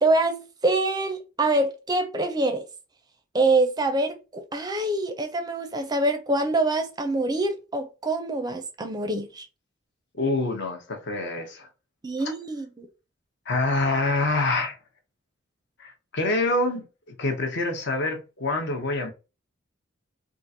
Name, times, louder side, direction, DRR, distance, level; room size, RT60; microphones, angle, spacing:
voice 1, 0.0-2.7 3.3-9.5 12.0-12.9, right 2 dB, 20° right, 0.5 m, -25 dB
voice 2, 10.1-11.7 12.2-12.3 13.5-14.8 15.8-16.9 17.2-19.1, left 2 dB, 55° left, 0.8 m, -26 dB
3.7 x 2.4 x 2.7 m
head